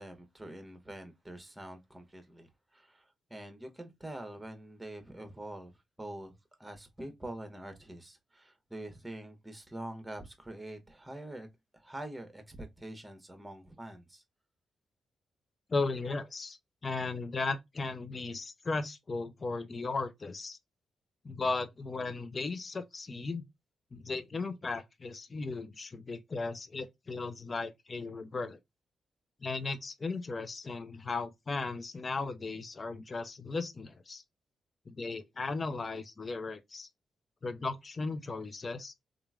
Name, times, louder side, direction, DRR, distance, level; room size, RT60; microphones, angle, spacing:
voice 1, 0.0-6.3 6.6-11.5 11.7-14.2, right 1 dB, 15° right, 1.1 m, -45 dB
voice 2, 15.7-20.6 21.2-23.4 23.9-28.6 29.4-34.2 34.9-36.9 37.4-38.9, left 3 dB, 45° left, 0.5 m, -36 dB
2.9 x 2.5 x 2.3 m
hypercardioid pair, 40°, 0 cm